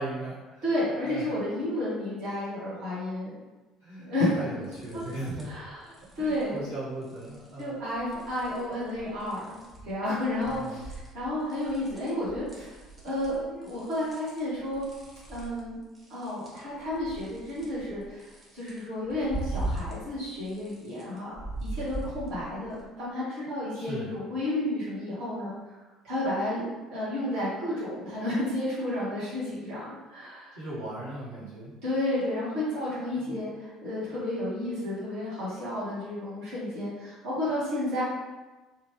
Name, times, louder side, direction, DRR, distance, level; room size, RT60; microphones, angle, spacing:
voice 1, 0.0-0.7 1.0-1.3 3.8-5.5 6.2-7.8 10.5-10.8 23.7-24.1 30.5-31.7 33.1-33.4, right 1 dB, 80° right, -14 dB, 1.3 m, -38 dB
voice 2, 0.6-3.3 4.0-4.4 4.9-5.0 5.4-5.8 6.1-6.6 7.6-9.6 9.8-12.7 13.0-14.8 15.3-15.8 16.1-21.3 21.6-25.7 26.0-30.6 31.8-38.0, left 1 dB, 60° right, -11 dB, 1.2 m, -31 dB
sound 1, 4.6-5.6 5.9-6.4 7.0-7.6 8.0-9.9 10.2-20.1 20.4-22.8, right 2 dB, 25° right, 1.1 m, -40 dB
2.8 x 2.4 x 3.0 m, 1.2 s
figure-of-eight pair, 55°, 0 cm